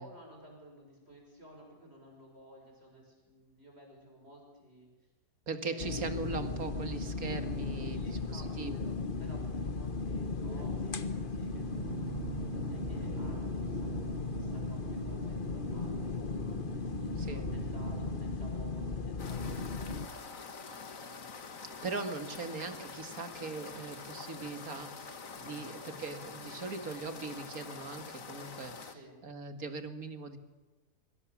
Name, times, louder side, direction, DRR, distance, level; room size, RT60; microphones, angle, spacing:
voice 1, 0.0-4.9 5.6-6.1 7.8-11.6 12.0-14.0 14.3-16.9 17.2-21.3 21.7-21.9 28.9-29.2, equal, 40° right, 1 dB, 6.7 m, -55 dB
voice 2, 5.5-8.8 17.2-17.5 21.8-29.0 29.2-30.4, right 3 dB, 65° right, 8 dB, 2.4 m, -40 dB
sound 1, 5.8-20.1, left 4 dB, 35° left, 1.2 m, -36 dB
sound 2, 11.0-18.9, right 9 dB, 85° right, 1.5 m, -45 dB
sound 3, 19.2-28.9, left 5 dB, 60° left, 2.0 m, -46 dB
26.0 x 24.5 x 7.4 m, 1.2 s
omnidirectional pair, 1.6 m